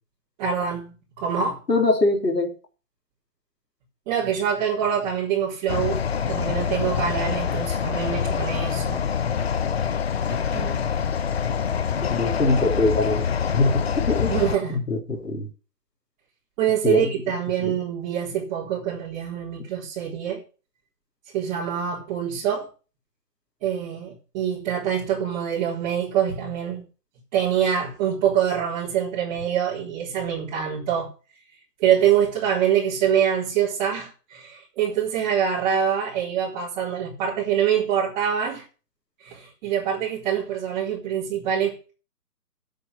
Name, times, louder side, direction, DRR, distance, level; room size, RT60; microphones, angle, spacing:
voice 1, 0.4-1.6 4.1-9.0 10.3-10.8 14.3-14.8 16.6-20.4 21.3-22.7 23.6-26.8 27.3-31.1 31.8-38.6 39.2-41.9, right 9 dB, 25° right, 4.1 m, -25 dB
voice 2, 1.7-2.5 12.0-13.3 13.5-14.4 14.7-15.5 16.8-17.1 17.6-17.8, left 2 dB, 75° left, 3.6 m, -23 dB
sound 1, 5.7-14.6, left 7 dB, 40° left, 0.6 m, -25 dB
8.5 x 7.9 x 7.9 m
figure-of-eight pair, 135°, 49 cm